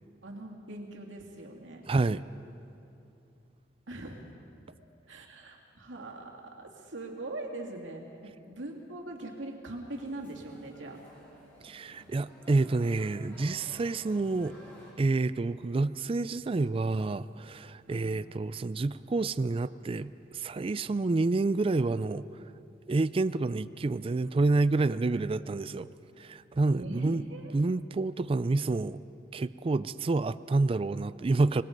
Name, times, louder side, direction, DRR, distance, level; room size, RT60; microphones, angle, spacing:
voice 1, 0.2-1.8 3.9-4.4 5.1-11.0 17.9-18.2 26.7-27.5, right 2 dB, 75° right, 1 dB, 2.6 m, -42 dB
voice 2, 1.9-2.2 11.6-14.6 15.0-22.4 22.9-25.9 26.2-27.2 27.5-29.0 29.3-31.6, right 3 dB, 30° right, 15 dB, 0.4 m, -28 dB
sound 1, 9.9-14.9, equal, 10° left, 5.9 m, -54 dB
25.0 x 20.0 x 5.3 m, 2.6 s
head